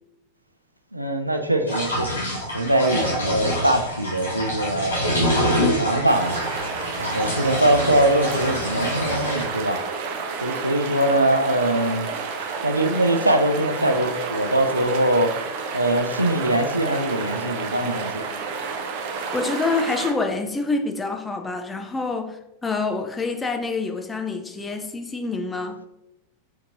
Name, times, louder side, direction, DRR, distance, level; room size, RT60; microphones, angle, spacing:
voice 1, 0.9-5.2 5.6-6.4 7.0-9.8 10.4-12.1 12.6-15.3 15.7-18.3, right 1 dB, 85° right, 0.4 m, -22 dB
sound 1, 1.7-9.4, equal, 75° left, 1.5 m, -26 dB
sound 2, 6.1-20.1, right 5 dB, 45° right, 0.7 m, -30 dB
voice 2, 19.3-25.8, left 3 dB, 15° left, 0.5 m, -27 dB
4.6 x 4.4 x 2.5 m
figure-of-eight pair, 90°, 0 cm